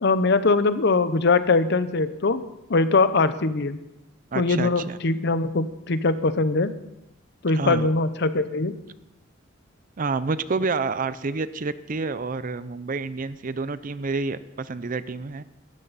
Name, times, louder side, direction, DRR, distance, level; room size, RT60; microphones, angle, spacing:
voice 1, 0.0-2.4 2.7-3.8 4.3-6.7 7.4-8.7, left 3 dB, 60° left, 13 dB, 0.7 m, -21 dB
voice 2, 4.3-5.0 7.5-7.9 10.0-15.4, right 4 dB, 45° right, 15 dB, 0.5 m, -28 dB
16.5 x 13.5 x 4.1 m, 0.93 s
head